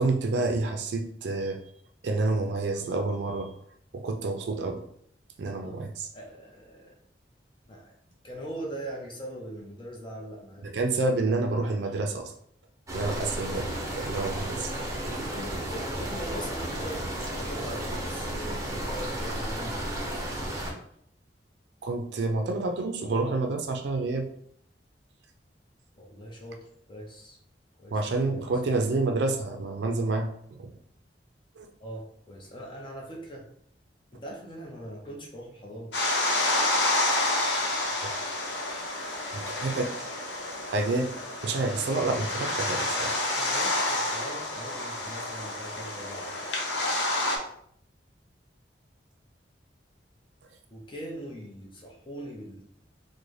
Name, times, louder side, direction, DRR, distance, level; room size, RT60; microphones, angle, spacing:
voice 1, 0.0-1.6 2.0-3.5 3.9-4.8 5.4-6.1 10.6-12.3 12.9-14.7 21.8-24.3 27.9-30.7 31.6-31.7 38.0-38.1 39.3-39.9 40.7-41.1 41.4-43.2, right 3 dB, 70° right, 5 dB, 0.4 m, -28 dB
voice 2, 6.1-7.0 7.7-7.9 8.2-10.7 13.2-13.4 15.1-19.9 26.0-27.4 27.8-28.0 28.5-28.6 31.8-33.5 34.1-36.1 43.3-46.5 50.7-52.7, equal, 30° left, -1 dB, 0.6 m, -41 dB
sound 1, 12.9-20.7, right 1 dB, 20° right, 0.6 m, -33 dB
sound 2, 35.9-47.4, left 2 dB, 80° left, 0.8 m, -29 dB
3.8 x 2.1 x 3.1 m, 0.67 s
head